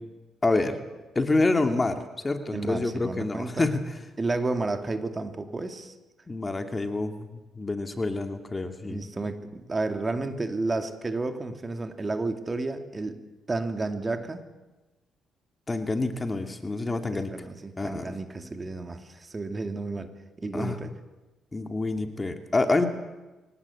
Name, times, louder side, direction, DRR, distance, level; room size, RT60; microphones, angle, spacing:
voice 1, 0.4-0.8 1.1-3.8 6.3-9.0 15.7-17.3 17.8-18.1 20.5-20.8 21.5-22.9, left 2 dB, 25° left, 6 dB, 2.4 m, -27 dB
voice 2, 2.5-3.7 4.2-5.9 8.8-13.2 13.5-14.4 17.1-20.1 20.4-20.9, right 3 dB, 25° right, 7 dB, 2.5 m, -31 dB
24.0 x 18.5 x 8.5 m, 1.1 s
cardioid pair, 90°, 0 cm